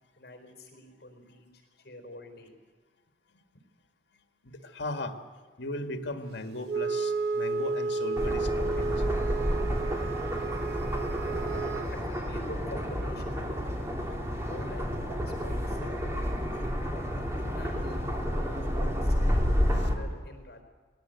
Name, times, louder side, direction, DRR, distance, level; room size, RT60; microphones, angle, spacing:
voice 1, 0.2-1.5 1.8-2.6 11.8-13.8 14.4-16.2 17.6-20.6, left 1 dB, 55° left, 5 dB, 4.2 m, -46 dB
voice 2, 4.4-5.2 5.6-9.2, left 2 dB, 80° left, 7 dB, 1.7 m, -37 dB
Wind instrument woodwind instrument, 6.7-12.0, right 4 dB, 60° right, 0.7 m, -32 dB
sound 1, 8.2-19.9, equal, 15° right, 2.6 m, -30 dB
19.0 x 18.0 x 9.2 m, 1.5 s
head